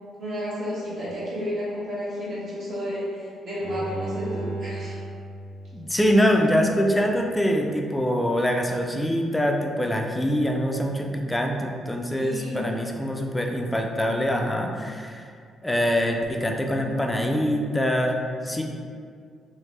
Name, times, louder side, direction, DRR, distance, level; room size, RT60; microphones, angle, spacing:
voice 1, 0.2-5.0 12.1-12.6, equal, 60° right, -8 dB, 1.2 m, -32 dB
Bowed string instrument, 3.6-6.7 7.1-7.2, right 2 dB, 85° left, 0.5 m, -35 dB
voice 2, 5.7-15.2 15.6-18.2 18.4-18.6, equal, 10° left, 2 dB, 0.3 m, -24 dB
3.1 x 2.0 x 3.2 m, 2.2 s
cardioid pair, 90°, 0 cm